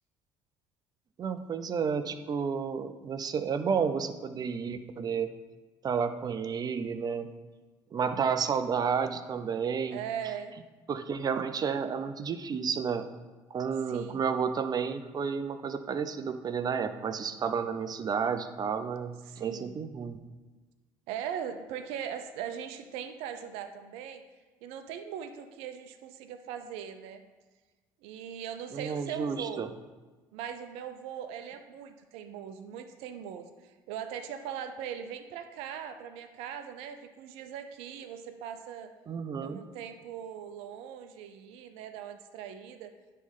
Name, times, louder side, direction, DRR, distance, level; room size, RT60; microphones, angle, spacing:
voice 1, 1.2-5.3 5.8-7.3 7.9-10.0 10.9-13.1 13.5-20.2 28.7-29.7 39.1-39.6, right 6 dB, 40° right, 10 dB, 0.6 m, -31 dB
voice 2, 9.9-10.5 13.9-14.3 19.2-19.7 21.1-24.2 24.6-27.2 28.0-29.7 30.3-38.9 39.4-42.9, right 8 dB, 80° right, 8 dB, 0.6 m, -40 dB
9.7 x 3.3 x 5.5 m, 1.3 s
supercardioid pair, 70°, 10 cm